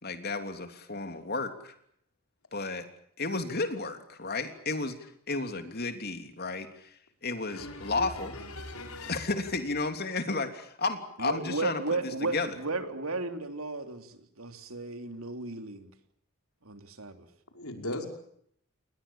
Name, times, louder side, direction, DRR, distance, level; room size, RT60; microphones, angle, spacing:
voice 1, 0.0-1.7 2.5-2.8 3.2-6.9 7.2-8.3 9.1-12.6, left 3 dB, 45° left, 7 dB, 3.3 m, -33 dB
voice 2, 7.5-9.2 17.5-18.1, left 1 dB, 80° left, 4 dB, 5.6 m, -39 dB
voice 3, 11.2-15.9 16.6-17.3, right 3 dB, 75° right, 7 dB, 3.3 m, -34 dB
29.0 x 21.5 x 7.2 m, 0.68 s
head